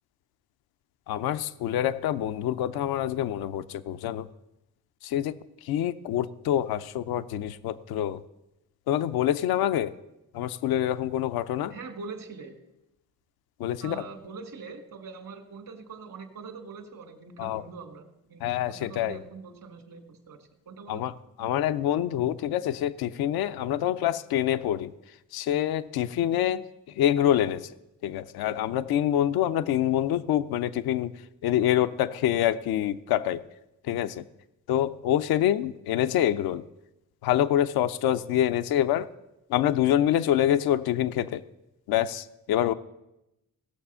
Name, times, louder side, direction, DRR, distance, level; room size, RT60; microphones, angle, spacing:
voice 1, 1.1-4.3 5.0-5.3 5.7-8.2 8.9-9.9 10.3-11.7 13.6-14.1 17.4-17.6 18.4-19.2 20.9-21.1 21.4-24.9 25.3-26.6 27.0-27.6 28.0-31.1 31.4-33.4 33.9-34.2 34.7-36.6 37.2-39.1 39.5-41.4 41.9-42.7, left 11 dB, 80° left, 13 dB, 0.6 m, -26 dB
voice 2, 11.7-12.6 13.8-21.0, right 4 dB, 60° right, 7 dB, 2.0 m, -43 dB
17.0 x 6.8 x 5.6 m, 0.90 s
supercardioid pair, 60°, 36 cm